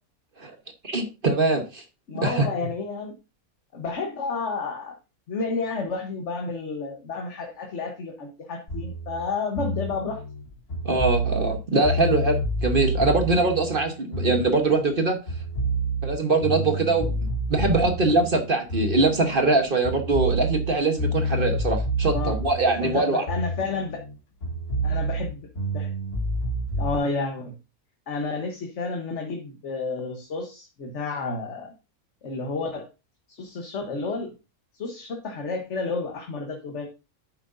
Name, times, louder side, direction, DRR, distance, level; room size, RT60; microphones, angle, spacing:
voice 1, 0.8-1.8 2.2-2.5 10.8-15.2 16.0-23.2, right 3 dB, 40° right, 6 dB, 1.2 m, -23 dB
voice 2, 2.1-3.1 3.7-4.9 5.3-10.2 22.0-22.4 22.8-24.0 24.8-25.5 25.7-25.9 26.8-27.5 28.1-31.7 32.2-32.9 33.3-34.3 34.8-36.9, left 4 dB, 55° left, 3 dB, 1.4 m, -31 dB
sound 1, 8.7-15.0 15.3-19.6 19.8-24.1 24.4-27.0, right 1 dB, 85° left, 3.6 m, -28 dB
9.5 x 7.4 x 2.6 m, 0.28 s
omnidirectional pair, 1.5 m